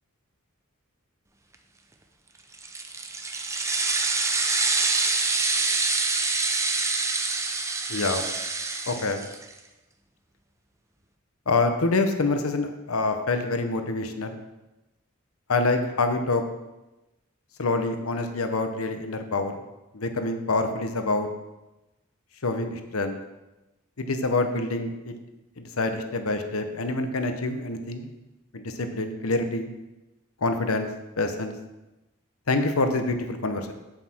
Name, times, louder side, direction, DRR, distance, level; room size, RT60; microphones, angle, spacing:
sound 1, 2.5-9.5, right 3 dB, 15° right, 0.7 m, -26 dB
voice 1, 7.9-8.2 8.9-9.2 11.5-14.4 15.5-16.4 17.6-19.6 19.9-21.3 22.4-23.2 24.0-25.1 25.6-28.1 28.5-29.7 30.4-30.9 31.2-31.5 32.5-33.7, left 3 dB, 80° left, 7 dB, 1.0 m, -26 dB
8.5 x 7.7 x 4.5 m, 1.0 s
head